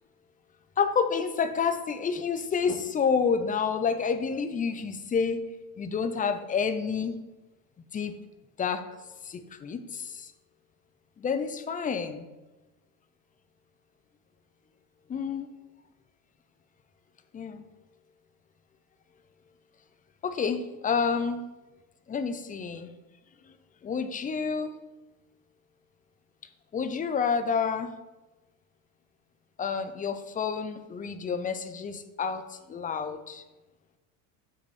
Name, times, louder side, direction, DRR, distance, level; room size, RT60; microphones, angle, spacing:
voice 1, 0.8-5.5 5.8-7.2 7.9-8.2 8.6-8.9 9.2-10.3 11.2-12.3 15.1-15.5 17.3-17.6 20.2-21.4 22.1-22.9 23.8-24.8 26.7-27.9 29.6-33.4, left 6 dB, 20° left, 10 dB, 0.5 m, -29 dB
7.7 x 6.3 x 4.2 m, 1.1 s
supercardioid pair, 120°, 45 cm